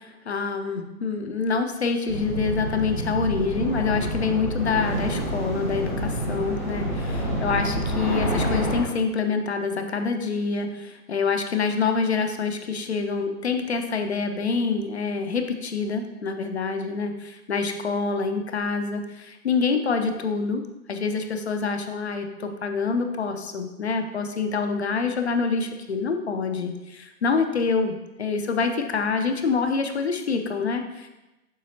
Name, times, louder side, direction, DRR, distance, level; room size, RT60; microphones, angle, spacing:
voice 1, 0.3-20.6 20.9-31.1, left 4 dB, 45° left, 6 dB, 0.7 m, -26 dB
sound 1, 2.1-8.8, equal, 10° right, 0.6 m, -28 dB
7.4 x 5.6 x 2.8 m, 1.0 s
figure-of-eight pair, 135°, 46 cm